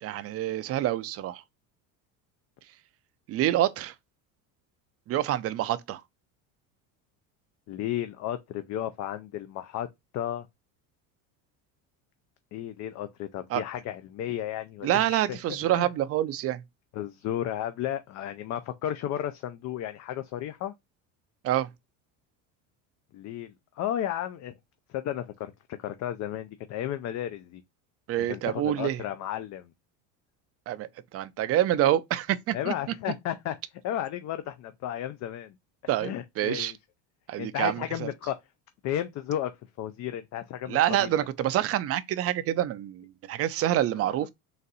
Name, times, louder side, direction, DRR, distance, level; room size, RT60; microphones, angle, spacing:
voice 1, 0.0-1.4 3.3-3.9 5.1-6.0 13.5-13.6 14.8-16.6 21.4-21.7 28.1-29.0 30.7-30.9 31.1-32.7 35.9-36.7 37.3-38.1 40.7-44.3, right 13 dB, 35° right, 0.4 m, -27 dB
voice 2, 7.7-9.9 10.1-10.5 12.5-15.4 15.7-15.9 16.9-20.7 23.1-24.5 24.9-25.5 25.8-27.6 28.2-29.7 32.5-33.6 33.8-35.5 36.0-36.8 37.4-38.3 38.8-39.5 39.8-41.1 44.0-44.1, left 11 dB, 45° left, 0.4 m, -33 dB
4.0 x 2.6 x 4.0 m
supercardioid pair, 115°, 41 cm